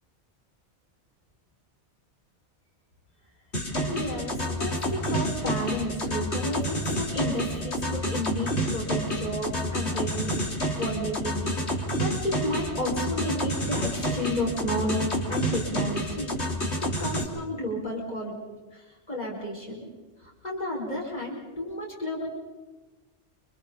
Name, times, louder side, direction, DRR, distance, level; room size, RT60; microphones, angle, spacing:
sound 1, 3.5-17.2, equal, 65° left, 3.4 m, -29 dB
voice 1, 3.9-10.4 10.8-11.6 11.9-16.4 16.8-18.4 18.7-19.8 20.4-22.3, equal, 35° left, -2 dB, 5.8 m, -32 dB
29.5 x 27.0 x 4.2 m, 1.2 s
omnidirectional pair, 1.2 m